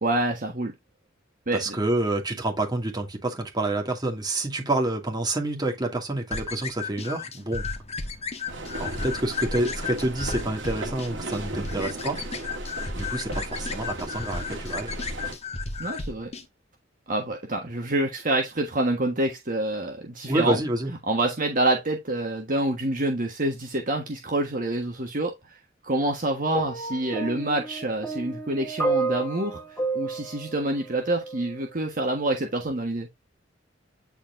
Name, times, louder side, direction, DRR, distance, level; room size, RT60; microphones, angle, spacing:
voice 1, 0.0-0.7 1.5-1.8 15.8-16.3 17.1-20.6 21.1-25.3 25.8-29.6 29.9-33.1, right 1 dB, 45° right, 1.4 m, -27 dB
voice 2, 1.5-7.7 8.8-12.2 12.9-14.9 20.3-20.9, right 2 dB, 20° right, 2.3 m, -28 dB
sound 1, 6.3-16.4, left 4 dB, 35° left, 1.4 m, -34 dB
sound 2, 8.5-15.4, right 1 dB, 70° right, 2.4 m, -35 dB
sound 3, 26.5-31.7 32.6-32.7, right 3 dB, 10° left, 2.2 m, -31 dB
9.9 x 4.5 x 2.6 m
head